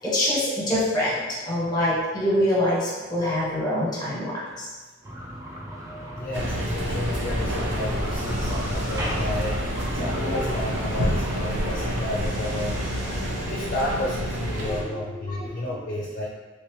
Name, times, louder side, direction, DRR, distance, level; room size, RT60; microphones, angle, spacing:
voice 1, 0.0-4.7 5.9-6.2 14.5-15.7, left 1 dB, 20° left, -6 dB, 1.1 m, -26 dB
sound 1, 5.0-11.9, equal, 15° right, 0.4 m, -36 dB
voice 2, 6.1-9.7 9.9-12.8 13.4-16.3, left 1 dB, 45° left, -5 dB, 0.5 m, -31 dB
sound 2, 6.3-14.8, equal, 65° right, 0.7 m, -28 dB
sound 3, 6.8-13.5, equal, 40° right, 1.3 m, -36 dB
3.3 x 2.8 x 3.1 m, 1.3 s
head